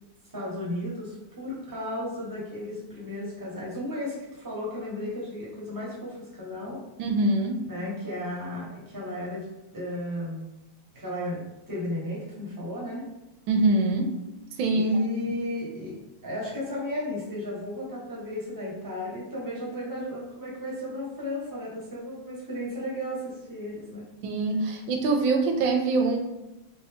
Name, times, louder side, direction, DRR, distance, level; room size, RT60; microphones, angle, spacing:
voice 1, 0.3-6.8 7.6-9.5 9.7-10.5 10.9-13.0 14.7-16.0 16.2-24.0, left 1 dB, 15° right, -6 dB, 1.0 m, -34 dB
voice 2, 7.0-7.6 13.5-14.1 14.6-14.9 15.3-15.4 24.2-26.2, right 2 dB, 90° right, 3 dB, 1.3 m, -24 dB
4.0 x 2.7 x 3.5 m, 0.99 s
omnidirectional pair, 2.0 m